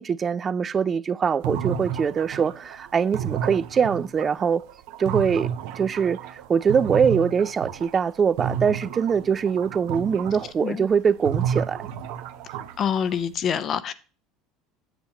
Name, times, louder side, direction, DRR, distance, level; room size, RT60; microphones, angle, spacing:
voice 1, 0.0-4.6 5.0-5.5 5.7-11.8, right 6 dB, 25° right, 0.3 m, -23 dB
sound 1, 1.4-8.1 8.4-13.3, right 8 dB, 70° right, 0.7 m, -31 dB
voice 2, 12.8-13.9, left 8 dB, 35° left, 0.5 m, -26 dB
8.3 x 7.9 x 2.9 m
cardioid pair, 140°, 0 cm